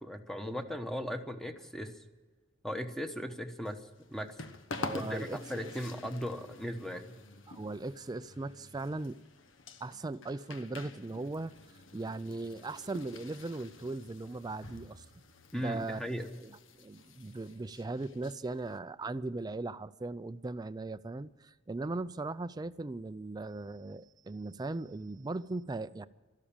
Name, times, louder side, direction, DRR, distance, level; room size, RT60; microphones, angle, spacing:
voice 1, 0.0-1.9 2.6-3.8 4.1-4.3 4.9-7.2 15.5-16.4, equal, ahead, 1.0 m, -37 dB
sound 1, 3.6-18.8, left 3 dB, 80° left, 1.0 m, -48 dB
voice 2, 4.8-5.7 7.5-9.2 9.8-11.5 11.9-15.0 15.5-16.1 16.4-16.5 16.8-26.1, right 2 dB, 20° right, 0.4 m, -38 dB
13.0 x 12.5 x 8.7 m
head